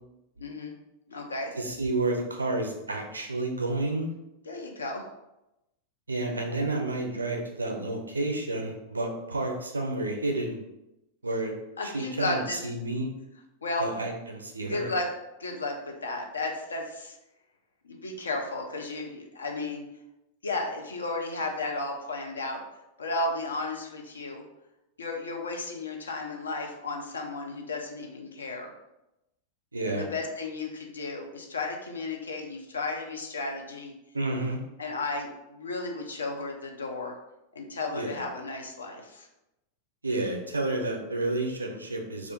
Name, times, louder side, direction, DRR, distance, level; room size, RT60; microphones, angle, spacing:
voice 1, 0.4-0.7 1.1-1.5 4.5-5.0 11.8-12.6 13.6-13.9 14.7-15.1 15.4-17.2 17.9-19.8 20.4-22.6 23.0-24.4 25.0-28.7 29.8-33.9 34.8-37.1 37.5-39.3, left 2 dB, 75° left, 1 dB, 0.5 m, -33 dB
voice 2, 1.6-4.1 6.1-10.6 11.2-11.6 11.8-13.1 13.8-14.9 29.7-30.0 34.1-34.6 37.9-38.2 40.0-42.3, right 2 dB, 80° right, 3 dB, 0.5 m, -30 dB
2.4 x 2.4 x 3.6 m, 0.90 s
figure-of-eight pair, 90°, 0 cm